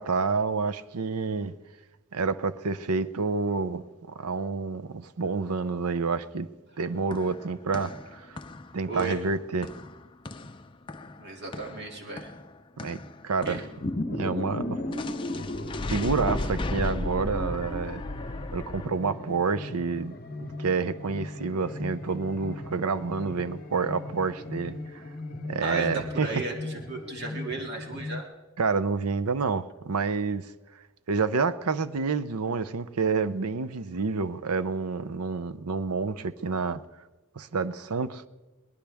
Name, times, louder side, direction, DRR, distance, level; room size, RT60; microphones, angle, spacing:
voice 1, 0.0-1.5 2.1-6.5 6.8-8.4 8.7-9.7 12.8-13.0 13.2-13.6 14.1-14.8 15.9-18.0 18.5-20.2 20.4-25.0 25.4-26.4 28.6-30.5 31.1-36.8 37.4-38.2, right 4 dB, 85° right, 14 dB, 0.7 m, -28 dB
sound 1, 6.9-13.9 14.9-18.9, left 2 dB, 20° left, 0.5 m, -36 dB
voice 2, 8.9-9.2 11.2-12.3 13.4-13.6 25.6-25.9 26.1-28.3, right 3 dB, 50° right, 1 dB, 2.5 m, -34 dB
sound 2, 13.4-28.2, left 1 dB, 40° left, 0.9 m, -37 dB
22.0 x 19.0 x 3.5 m, 1.2 s
head